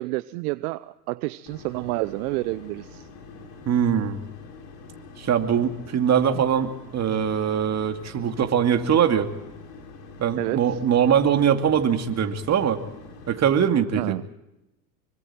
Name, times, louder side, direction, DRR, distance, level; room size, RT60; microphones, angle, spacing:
voice 1, 0.0-3.1 6.3-6.4 10.4-10.8 14.0-14.3, right 21 dB, 60° right, 15 dB, 0.8 m, -29 dB
sound 1, 1.5-13.4, left 4 dB, 60° left, 6.5 m, -44 dB
voice 2, 3.7-4.2 5.2-9.3 10.2-12.8 13.3-14.1, right 8 dB, 30° right, 6 dB, 2.5 m, -22 dB
26.0 x 24.0 x 4.4 m, 0.93 s
hypercardioid pair, 90°, 49 cm